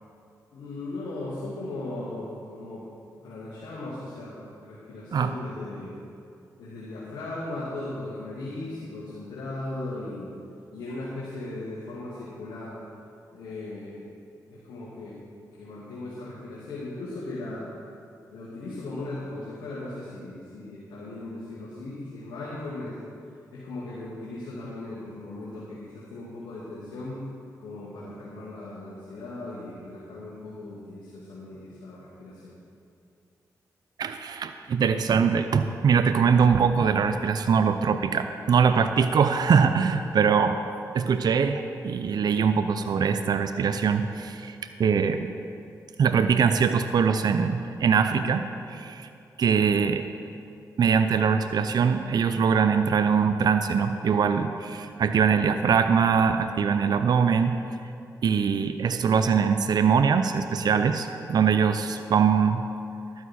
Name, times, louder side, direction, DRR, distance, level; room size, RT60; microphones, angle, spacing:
voice 1, 0.5-2.9 3.2-6.0 6.6-10.3 10.7-12.8 13.3-14.0 14.5-15.2 15.6-17.7 18.3-23.0 23.5-27.3 27.6-32.5, left 2 dB, 85° left, -8 dB, 2.0 m, -37 dB
voice 2, 34.0-40.6 40.9-45.3 46.0-49.1 49.4-50.0 50.8-57.6 58.2-62.7, right 6 dB, 65° right, 9 dB, 0.5 m, -22 dB
12.0 x 9.5 x 4.3 m, 2.5 s
supercardioid pair, 50°, 8 cm